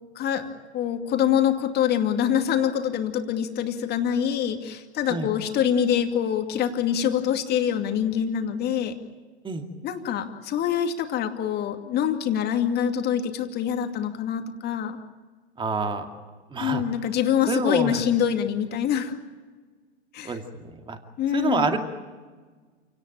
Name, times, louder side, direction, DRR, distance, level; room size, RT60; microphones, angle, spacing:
voice 1, 0.2-8.9 9.8-15.0 16.6-19.1 20.1-20.4 21.2-21.7, left 9 dB, 30° left, 6 dB, 2.4 m, -25 dB
voice 2, 15.6-16.1 16.5-16.8 17.5-18.0 20.2-21.0 21.3-21.8, right 4 dB, 15° right, 5 dB, 2.3 m, -27 dB
28.0 x 18.0 x 9.0 m, 1.4 s
figure-of-eight pair, 105°, 33 cm